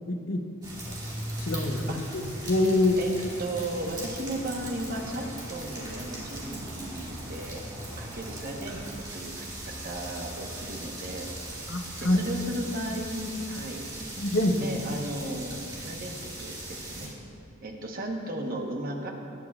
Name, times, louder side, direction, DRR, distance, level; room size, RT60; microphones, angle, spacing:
voice 1, 0.1-0.5 0.9-1.0 1.4-3.0 11.7-12.2 14.2-14.7, left 2 dB, 70° left, 4 dB, 0.9 m, -26 dB
sound 1, 0.6-17.1, right 1 dB, 20° right, 2.2 m, -39 dB
voice 2, 3.4-7.6 8.0-11.3 12.0-13.9 14.6-17.1 17.6-19.1, right 1 dB, 45° right, 1 dB, 1.1 m, -35 dB
18.5 x 8.9 x 2.4 m, 2.6 s
head